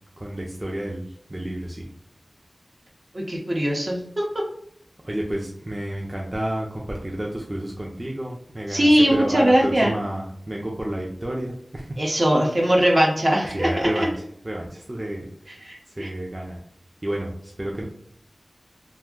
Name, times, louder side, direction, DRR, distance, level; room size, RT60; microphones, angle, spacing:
voice 1, 0.2-1.9 5.0-12.0 12.6-12.7 13.5-15.2 16.0-16.6 17.0-17.8, right 1 dB, 30° right, -2 dB, 0.5 m, -30 dB
voice 2, 3.1-4.0 8.7-9.9 12.0-13.9 15.7-16.1, equal, 55° right, -2 dB, 0.8 m, -20 dB
2.5 x 2.1 x 3.6 m, 0.66 s
wide cardioid pair, 50°, 0 cm